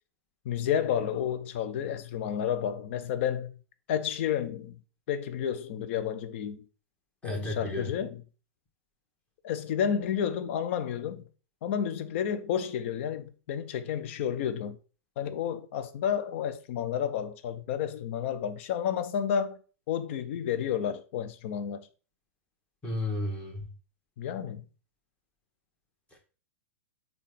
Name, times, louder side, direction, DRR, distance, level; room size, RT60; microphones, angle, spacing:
voice 1, 0.4-3.6 3.9-4.8 5.1-6.7 7.2-8.2 9.4-11.3 11.6-14.8 15.2-19.6 19.9-21.9 24.2-24.6, left 8 dB, 55° left, 0.5 m, -31 dB
voice 2, 7.2-7.8 22.8-23.7, left 1 dB, 15° left, 1.3 m, -33 dB
3.7 x 2.3 x 3.3 m
hypercardioid pair, 115°, 8 cm